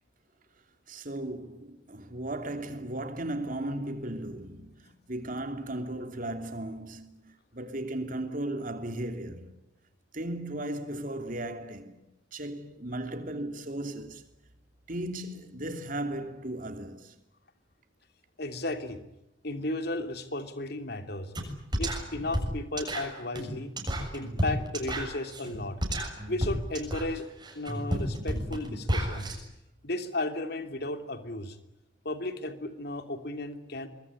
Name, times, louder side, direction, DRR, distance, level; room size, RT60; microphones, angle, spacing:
voice 1, 0.9-9.5 10.1-12.0 12.3-14.2 14.9-17.1, right 1 dB, 45° right, 3.0 m, -36 dB
voice 2, 18.4-19.0 19.4-21.3 21.8-23.7 24.1-25.8 26.3-27.3 27.5-29.3 29.8-31.6 32.0-33.9, left 2 dB, 55° left, 3.0 m, -34 dB
sound 1, 21.3-21.5 21.7-29.3, equal, 20° right, 7.0 m, -31 dB
24.5 x 22.5 x 9.8 m
head